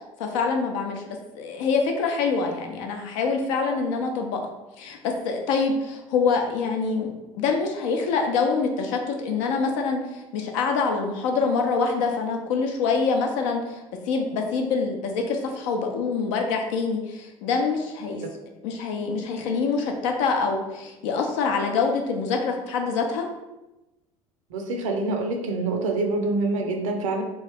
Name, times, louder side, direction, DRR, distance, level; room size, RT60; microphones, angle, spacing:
voice 1, 0.2-1.0 1.3-4.4 4.8-18.2 18.6-23.3, left 4 dB, 60° left, 3 dB, 0.6 m, -25 dB
voice 2, 24.5-27.2, right 2 dB, 70° right, 3 dB, 0.6 m, -26 dB
3.1 x 2.6 x 3.4 m, 1.0 s
figure-of-eight pair, 70°, 17 cm